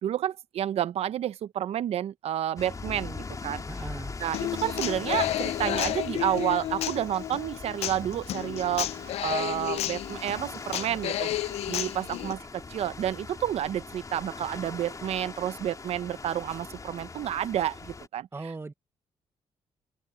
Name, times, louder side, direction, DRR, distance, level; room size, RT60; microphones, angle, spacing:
voice 1, 0.0-3.9 4.2-11.3 11.7-18.5, right 11 dB, 75° right, 0.9 m, -30 dB
sound 1, 2.6-18.1, left 4 dB, 30° left, 4.1 m, -41 dB
voice 2, 3.7-4.1 18.3-18.7, right 3 dB, 25° right, 1.0 m, -38 dB
Human voice / Acoustic guitar, 4.3-12.3, left 13 dB, 75° left, 0.4 m, -32 dB
open air
cardioid pair, 85°, 11 cm